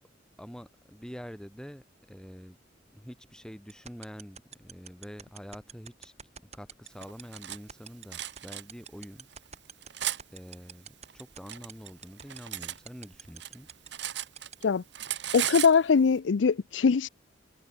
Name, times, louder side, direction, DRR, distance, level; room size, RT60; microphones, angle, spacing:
voice 1, 0.4-2.6 2.9-9.3 10.3-13.7, equal, 5° left, 2.0 m, -46 dB
sound 1, 3.7-14.5, right 7 dB, 35° right, 3.4 m, -44 dB
Cutlery silverware, 7.0-7.6 8.1-8.6 9.3-10.2 11.1-12.8 13.1-14.7 14.9-15.8, right 12 dB, 65° right, 1.4 m, -35 dB
voice 2, 15.3-17.1, left 5 dB, 75° left, 0.5 m, -22 dB
head